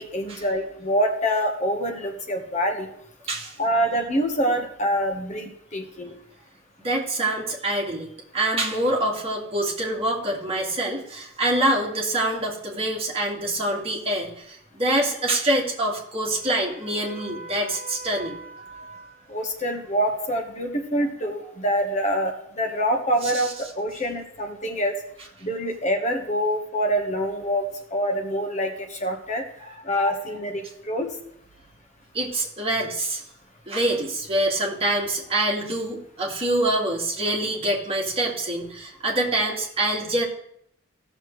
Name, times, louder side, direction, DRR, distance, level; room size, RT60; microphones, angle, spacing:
voice 1, 0.0-2.9 3.6-6.1 19.3-24.9 25.4-29.4 29.8-31.1, equal, 35° left, 4 dB, 1.2 m, -25 dB
voice 2, 6.8-19.2 23.2-23.5 29.6-30.0 32.1-33.2 33.7-40.3, right 1 dB, 30° right, -3 dB, 2.2 m, -26 dB
15.0 x 6.6 x 3.2 m, 0.72 s
head